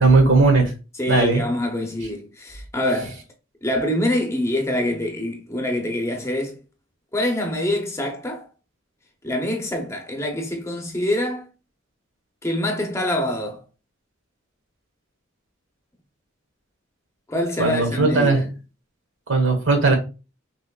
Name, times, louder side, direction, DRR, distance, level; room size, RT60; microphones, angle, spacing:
voice 1, 0.0-0.7 1.1-1.4 17.6-18.4 19.3-20.0, right 3 dB, 75° right, 1.3 m, -17 dB
voice 2, 1.0-3.2 3.6-6.5 7.1-8.5 9.2-11.5 12.4-13.6 17.3-18.5, left 1 dB, 15° left, 0.7 m, -25 dB
5.9 x 3.1 x 2.3 m
head